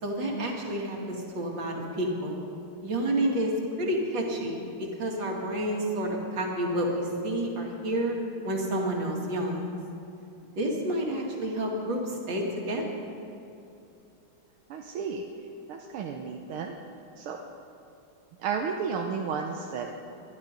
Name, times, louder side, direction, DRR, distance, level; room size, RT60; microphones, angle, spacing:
voice 1, 0.0-2.4 2.8-3.5 3.8-8.2 8.4-9.8 10.6-13.1, right 1 dB, 60° right, -1 dB, 2.8 m, -29 dB
voice 2, 14.7-15.2 15.7-16.8 17.2-17.4 18.4-19.9, right 6 dB, 85° right, 2 dB, 1.7 m, -32 dB
23.0 x 11.0 x 5.2 m, 2.8 s
omnidirectional pair, 2.3 m